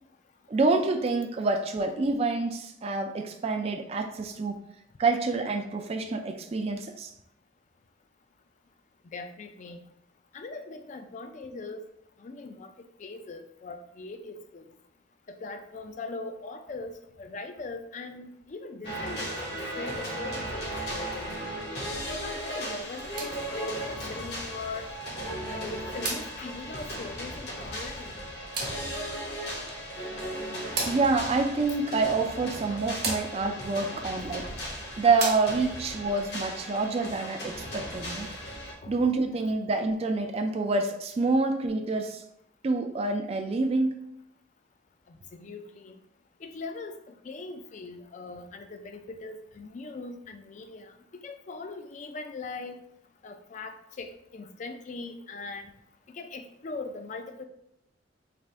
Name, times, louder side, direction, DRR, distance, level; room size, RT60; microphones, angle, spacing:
voice 1, 0.5-4.6 5.0-7.1 30.8-34.5 35.0-38.3 38.9-42.2 42.6-43.9, right 3 dB, 35° right, 5 dB, 0.3 m, -27 dB
voice 2, 9.1-9.9 10.3-11.8 12.2-12.7 13.0-14.7 15.3-19.4 19.7-21.4 22.2-24.9 25.5-28.2 38.8-38.9 45.1-46.0 46.4-50.9 51.2-52.8 53.2-55.7 56.1-57.4, left 3 dB, 40° left, 6 dB, 0.4 m, -40 dB
sound 1, 18.8-38.7, equal, 65° left, 1.1 m, -36 dB
sound 2, 22.8-35.9, right 3 dB, 55° right, 1.0 m, -40 dB
3.4 x 2.5 x 4.2 m, 0.77 s
head